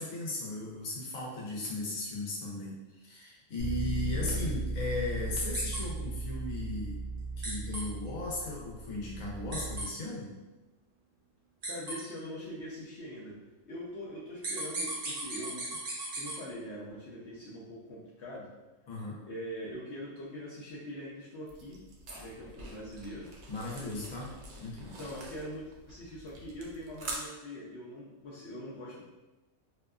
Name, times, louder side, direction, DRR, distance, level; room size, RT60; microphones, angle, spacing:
voice 1, 0.0-7.0 7.4-10.3 18.9-19.2 23.5-24.3 24.6-25.0, left 2 dB, 80° left, -4 dB, 1.1 m, -37 dB
Bass guitar, 3.6-9.8, right 2 dB, 35° left, 0.6 m, -37 dB
sound 1, 5.5-5.8 7.4-7.8 9.5-9.9 11.6-12.0 14.4-16.4, right 2 dB, 50° right, 0.8 m, -36 dB
voice 2, 11.6-13.4 13.7-15.8 16.2-18.5 19.3-21.8 22.2-23.3 24.7-29.0, equal, 65° left, -6 dB, 0.8 m, -43 dB
sound 2, 21.5-27.2, right 2 dB, 70° right, 0.4 m, -46 dB
2.7 x 2.3 x 2.2 m, 1.1 s
omnidirectional pair, 1.4 m